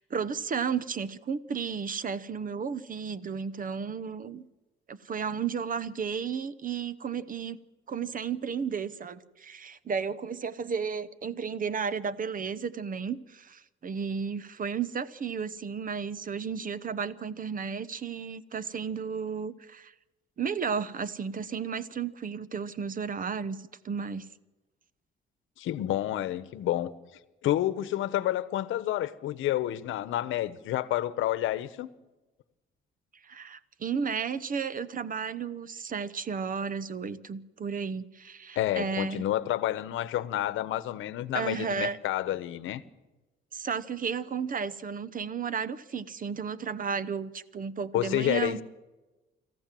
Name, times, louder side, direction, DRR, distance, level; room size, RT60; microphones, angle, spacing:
voice 1, 0.0-4.4 4.9-7.6 7.9-19.9 20.4-24.2 33.2-39.3 41.3-42.0 43.5-48.6, right 6 dB, 45° right, 1.0 m, -33 dB
voice 2, 25.6-26.9 27.4-31.9 38.6-42.8 47.9-48.6, left 13 dB, 85° left, 1.0 m, -29 dB
26.5 x 14.0 x 7.6 m
cardioid pair, 90°, 20 cm